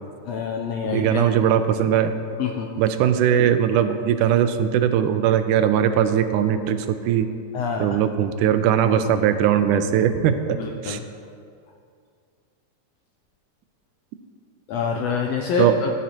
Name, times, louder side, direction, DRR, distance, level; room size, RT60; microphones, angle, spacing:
voice 1, 0.2-1.4 2.4-2.7 7.5-8.0 10.6-11.0 14.7-15.9, left 6 dB, 80° left, 2 dB, 1.5 m, -26 dB
voice 2, 0.9-2.1 2.8-7.3 7.8-10.6 10.8-11.0 15.6-15.8, right 9 dB, 85° right, 9 dB, 2.1 m, -20 dB
16.5 x 9.4 x 2.9 m, 2.3 s
omnidirectional pair, 3.6 m